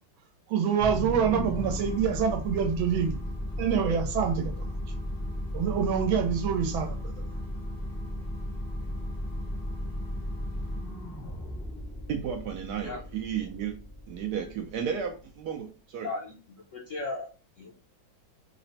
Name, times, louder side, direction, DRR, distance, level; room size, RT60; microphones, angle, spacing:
voice 1, 0.5-3.2 3.6-4.7 5.5-7.1, right 7 dB, 90° right, 4 dB, 1.6 m, -26 dB
sound 1, 0.8-15.3, left 1 dB, 20° left, 0.5 m, -35 dB
voice 2, 12.1-13.8 14.1-16.1, right 8 dB, 75° right, 4 dB, 1.0 m, -33 dB
voice 3, 16.0-17.3 17.6-17.8, left 3 dB, 60° left, -2 dB, 0.8 m, -36 dB
4.0 x 2.1 x 4.0 m, 0.35 s
omnidirectional pair, 2.2 m